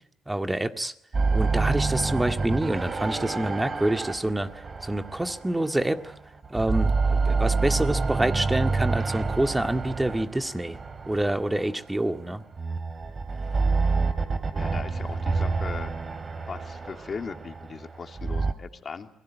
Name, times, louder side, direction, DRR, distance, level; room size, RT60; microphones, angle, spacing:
voice 1, 0.3-0.9 1.3-4.5 4.8-6.1 6.5-10.8 11.1-12.4, right 1 dB, 10° right, 7 dB, 1.9 m, -27 dB
sound 1, 1.1-6.1 6.4-11.8 12.5-18.5, right 4 dB, 35° right, 3.1 m, -28 dB
voice 2, 14.5-15.9 16.5-19.1, left 5 dB, 40° left, 5 dB, 2.9 m, -38 dB
28.5 x 22.0 x 9.3 m, 0.78 s
cardioid pair, 90°, 0 cm